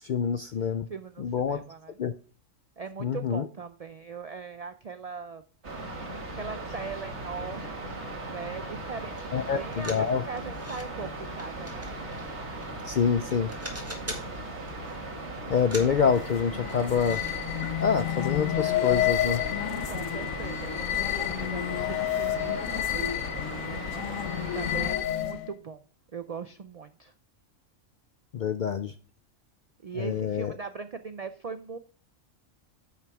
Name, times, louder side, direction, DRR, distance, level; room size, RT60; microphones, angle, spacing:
voice 1, 0.0-0.9 1.2-1.6 2.0-2.1 3.0-3.5 9.3-10.2 12.8-13.5 15.5-17.2 17.8-19.4 28.3-28.9 30.0-30.5, left 7 dB, 65° left, 10 dB, 0.4 m, -26 dB
voice 2, 0.9-2.0 2.8-5.4 6.3-11.9 19.9-25.8 26.1-27.1 29.8-31.8, right 5 dB, 75° right, 10 dB, 0.3 m, -40 dB
sound 1, 5.6-24.9, right 2 dB, 60° right, 2.1 m, -38 dB
sound 2, 9.2-9.3 9.5-10.9 11.4-13.0 13.3-14.3 14.7-15.0 15.5-17.3 17.6-17.8 18.1-18.2, right 1 dB, 10° right, 1.5 m, -43 dB
sound 3, 15.8-25.5, left 12 dB, 90° left, 1.1 m, -30 dB
9.0 x 5.9 x 3.4 m, 0.41 s
omnidirectional pair, 1.3 m